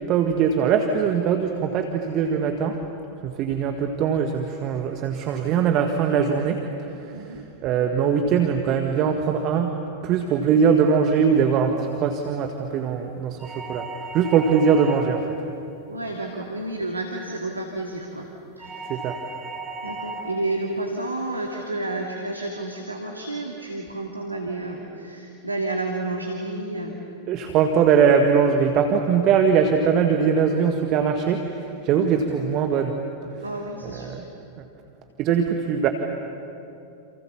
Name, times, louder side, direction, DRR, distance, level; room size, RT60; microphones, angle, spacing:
voice 1, 0.1-2.8 3.2-6.6 7.0-7.3 7.6-9.7 10.0-11.7 12.0-13.9 14.1-15.3 18.9-19.2 27.3-32.9 33.9-34.3 35.2-35.9, right 6 dB, 35° right, 5 dB, 1.7 m, -21 dB
voice 2, 7.1-7.4 15.9-18.3 18.6-19.0 19.8-27.0 33.4-34.2, right 2 dB, 80° right, 1 dB, 2.4 m, -31 dB
sound 1, 13.4-15.3 18.6-20.4, right 3 dB, 15° right, 5.9 m, -35 dB
29.0 x 28.5 x 7.2 m, 2.8 s
figure-of-eight pair, 90°, 0 cm